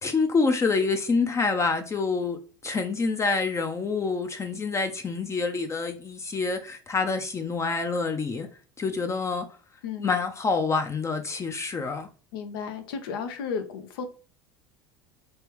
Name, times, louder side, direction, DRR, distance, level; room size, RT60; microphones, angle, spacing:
voice 1, 0.0-8.5 8.8-9.5 10.0-12.1, left 4 dB, 25° left, 0.5 m, -27 dB
voice 2, 12.3-14.1, left 6 dB, 75° left, 0.8 m, -33 dB
3.3 x 3.3 x 3.0 m
hypercardioid pair, 80°, 12 cm